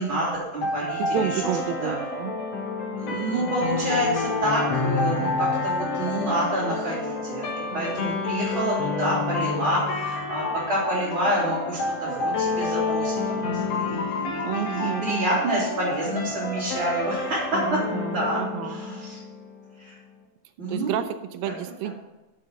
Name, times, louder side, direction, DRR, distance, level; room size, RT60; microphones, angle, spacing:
voice 1, 0.0-1.6 1.8-2.0 3.0-17.8 18.1-19.2 19.8-19.9 20.6-21.0, right 1 dB, 35° right, -9 dB, 3.4 m, -28 dB
sound 1, 0.6-19.6, left 3 dB, 55° left, 2.0 m, -29 dB
voice 2, 1.0-2.3 14.4-15.4 17.6-18.8 20.7-21.9, right 10 dB, 85° right, 10 dB, 2.2 m, -30 dB
7.7 x 6.7 x 5.9 m, 1.0 s
omnidirectional pair, 4.0 m